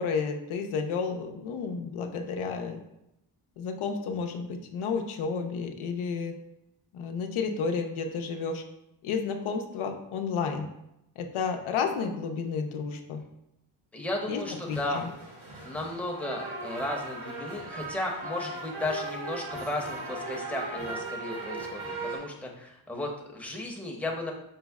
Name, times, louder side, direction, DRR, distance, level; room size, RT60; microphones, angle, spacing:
voice 1, 0.0-2.8 3.6-6.4 6.9-8.6 9.0-10.7 11.2-13.2 14.3-14.4 14.7-15.1, left 5 dB, 85° left, 5 dB, 0.6 m, -31 dB
voice 2, 13.9-15.1 15.6-24.3, left 1 dB, 5° left, -1 dB, 0.7 m, -34 dB
sound 1, 14.3-22.2, right 2 dB, 75° right, 1.4 m, -38 dB
5.4 x 2.1 x 3.4 m, 0.83 s
cardioid pair, 90°, 48 cm